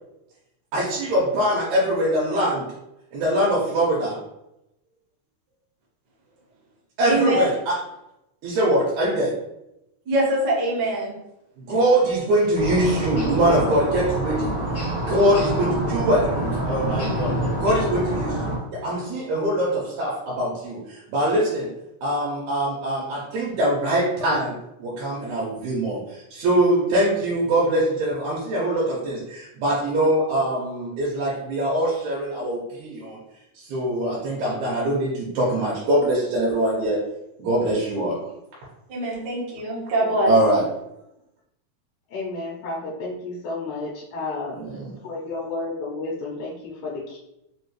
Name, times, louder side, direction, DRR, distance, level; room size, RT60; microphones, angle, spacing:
voice 1, 0.7-2.7 3.1-4.2 7.0-7.8 8.4-9.3 11.7-14.5 15.0-17.3 17.6-21.7 22.0-33.2 33.6-37.0 37.4-38.2 40.3-40.6 44.5-44.9, right 1 dB, 80° right, -5 dB, 2.2 m, -23 dB
voice 2, 7.0-7.5 10.1-11.1 38.9-40.3, right 1 dB, 55° right, -6 dB, 1.2 m, -23 dB
sound 1, 12.5-18.6, right 1 dB, 45° left, 1.1 m, -26 dB
voice 3, 40.0-40.4 42.1-44.5 45.0-47.2, left 3 dB, 80° left, -5 dB, 2.0 m, -32 dB
5.0 x 2.8 x 3.1 m, 0.87 s
omnidirectional pair, 3.4 m